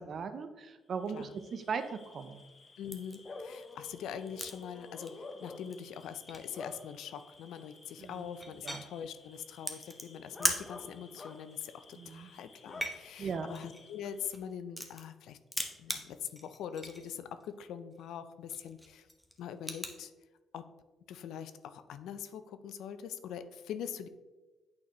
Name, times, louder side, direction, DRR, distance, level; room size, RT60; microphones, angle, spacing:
voice 1, 0.0-2.4 8.0-8.3 8.6-8.8 12.0-12.3 13.2-13.5, right 5 dB, 55° right, 10 dB, 0.6 m, -38 dB
Bark / Cricket, 1.0-14.3, left 3 dB, 35° left, 0.6 m, -51 dB
voice 2, 2.8-15.4 15.8-19.1 19.4-20.1 20.5-20.7 21.1-24.1, left 8 dB, 80° left, 11 dB, 0.4 m, -43 dB
sound 1, 2.9-3.2 3.6-4.6 4.9-5.3 5.7-5.8 6.0-6.6 7.6-7.7 8.0-8.9 9.6-10.6 11.0-11.2 11.5-12.2 12.6-15.2 15.5-17.1 17.4-17.5 17.9-18.1 18.5-20.0, equal, ahead, 0.9 m, -38 dB
8.5 x 4.2 x 3.0 m, 1.2 s
cardioid pair, 80°, 0 cm